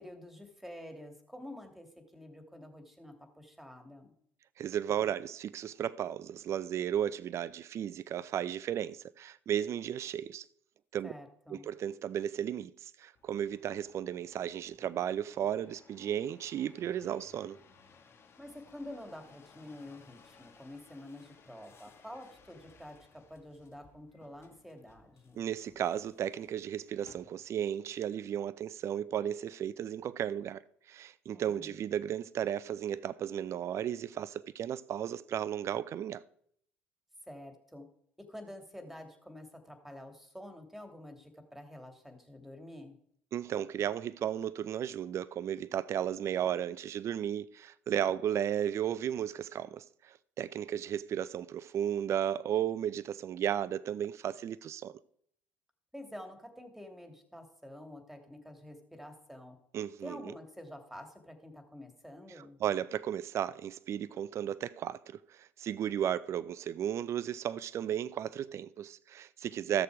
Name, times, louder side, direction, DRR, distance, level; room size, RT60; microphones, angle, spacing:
voice 1, 0.0-1.9 2.1-4.1 11.0-11.7 18.4-25.4 31.3-31.7 37.3-37.9 38.3-43.0 55.9-59.6 60.0-62.6, left 1 dB, ahead, 2.6 m, -48 dB
voice 2, 4.6-10.4 10.9-11.1 11.5-17.6 25.3-30.6 30.9-36.2 43.3-54.9 59.7-60.3 62.6-69.8, right 10 dB, 50° right, 0.5 m, -34 dB
sound 1, 13.1-27.7 28.3-28.8, left 5 dB, 45° left, 1.9 m, -61 dB
14.0 x 6.8 x 4.9 m
hypercardioid pair, 60°, 6 cm